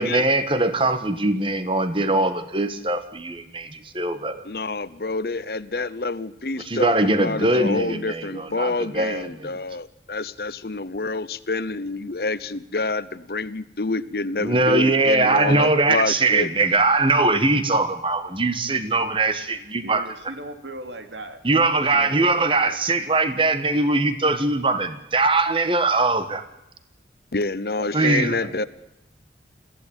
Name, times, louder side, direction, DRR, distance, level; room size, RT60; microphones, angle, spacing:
voice 1, 0.0-4.4 6.7-9.5 14.4-20.0 21.4-26.4 27.9-28.3, right 2 dB, 30° right, 11 dB, 1.5 m, -21 dB
voice 2, 4.4-16.5 27.3-28.6, left 3 dB, 55° left, 16 dB, 0.8 m, -27 dB
voice 3, 19.8-21.4 21.8-22.8 27.8-28.7, right 1 dB, 85° right, 7 dB, 2.7 m, -37 dB
22.5 x 15.5 x 8.9 m, 0.88 s
head